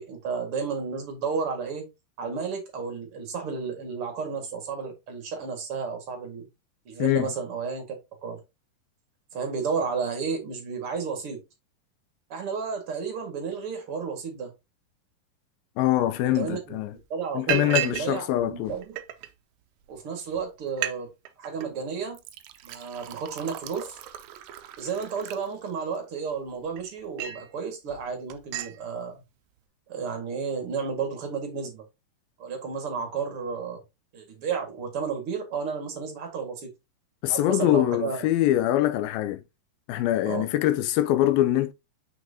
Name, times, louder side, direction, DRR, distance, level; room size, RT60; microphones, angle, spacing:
voice 1, 0.0-1.9 2.2-6.5 6.9-8.4 9.3-11.4 12.3-14.5 16.2-16.8 17.1-19.0 19.9-21.1 21.4-22.2 22.6-24.0 24.8-29.1 29.9-31.8 32.4-33.8 34.1-36.7 37.3-38.3 40.3-40.5, right 5 dB, 45° right, 2.3 m, -32 dB
voice 2, 7.0-7.3 15.8-17.0 17.3-18.8 37.2-39.4 39.9-41.7, left 13 dB, 85° left, 2.6 m, -24 dB
Liquid, 16.3-16.4 16.8-17.0 17.5-18.1 18.4-19.3 20.0-20.1 20.3-20.4 20.7-21.0 21.3-21.7 22.1-26.0 26.5-27.5 27.9-28.1 28.3-28.8, right 13 dB, 90° right, 1.6 m, -34 dB
6.4 x 6.0 x 2.7 m
omnidirectional pair, 4.1 m